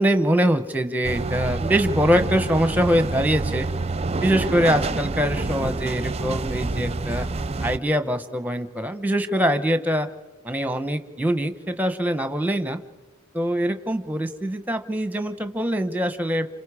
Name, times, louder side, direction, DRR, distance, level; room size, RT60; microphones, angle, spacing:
voice 1, 0.0-3.7 4.2-7.3 7.6-10.1 10.4-12.8 13.3-16.5, equal, 10° right, 9 dB, 1.0 m, -23 dB
sound 1, 1.0-7.8, right 3 dB, 30° right, 0.6 m, -27 dB
28.0 x 27.5 x 5.0 m, 1.2 s
head